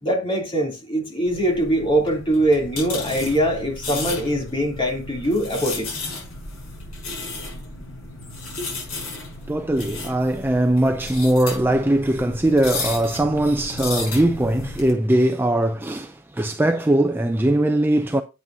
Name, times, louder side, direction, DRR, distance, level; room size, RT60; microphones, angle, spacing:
voice 1, 0.0-5.9, right 1 dB, 25° left, 2.9 m, -22 dB
sound 1, 1.3-14.9, left 3 dB, 85° left, 5.8 m, -34 dB
voice 2, 9.5-18.2, right 1 dB, 10° right, 0.4 m, -20 dB
9.1 x 8.3 x 2.7 m
head